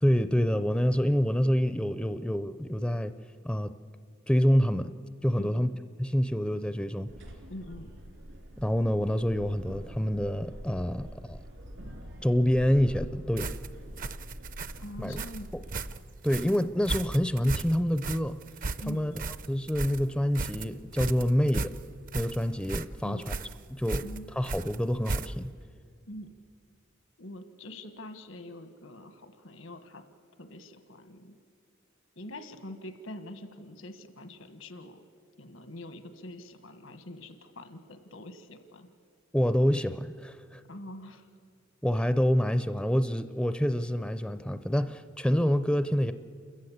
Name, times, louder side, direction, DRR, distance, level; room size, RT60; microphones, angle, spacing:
voice 1, 0.0-3.1 3.4-3.7 4.3-4.9 5.2-5.7 6.0-7.1 8.6-11.4 12.2-13.5 15.0-15.2 16.2-18.4 18.9-19.1 19.5-21.7 22.1-23.2 23.7-24.0 24.4-25.5 39.3-40.6 41.8-46.1, equal, 5° left, 11 dB, 0.5 m, -27 dB
voice 2, 5.3-5.7 7.5-7.9 14.8-15.5 18.8-19.3 23.0-23.3 24.0-24.3 26.1-26.3 27.2-30.0 30.4-31.4 32.1-35.0 35.4-38.9 40.7-41.3, left 1 dB, 85° left, 9 dB, 1.5 m, -44 dB
sound 1, 7.1-16.0, equal, 75° right, 3.1 m, -44 dB
sound 2, 13.4-25.6, right 3 dB, 45° right, 0.6 m, -36 dB
28.5 x 14.5 x 8.6 m, 2.2 s
head